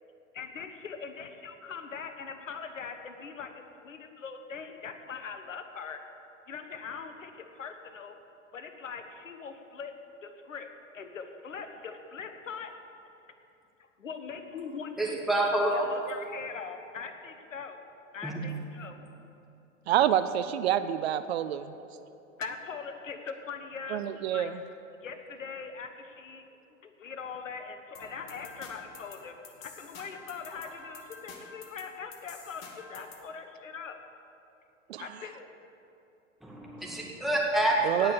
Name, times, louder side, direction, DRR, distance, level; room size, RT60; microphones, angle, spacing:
voice 1, 0.4-3.5 3.8-6.0 6.5-8.2 8.5-9.9 10.2-12.7 14.0-15.2 15.7-17.8 18.1-19.0 21.7-21.8 22.4-24.0 24.3-24.5 25.0-26.4 26.8-29.3 29.6-34.0 35.0-35.5 37.7-38.1, left 5 dB, 75° left, 7 dB, 1.2 m, -41 dB
voice 2, 15.0-15.9 18.2-18.4 36.4-38.1, right 1 dB, ahead, -3 dB, 2.1 m, -28 dB
voice 3, 19.9-21.7 23.9-24.5 34.9-35.1 37.8-38.1, right 11 dB, 55° right, 12 dB, 0.5 m, -27 dB
sound 1, 27.9-33.3, left 4 dB, 50° left, 1.7 m, -48 dB
17.5 x 6.4 x 7.0 m, 2.8 s
figure-of-eight pair, 95°, 39 cm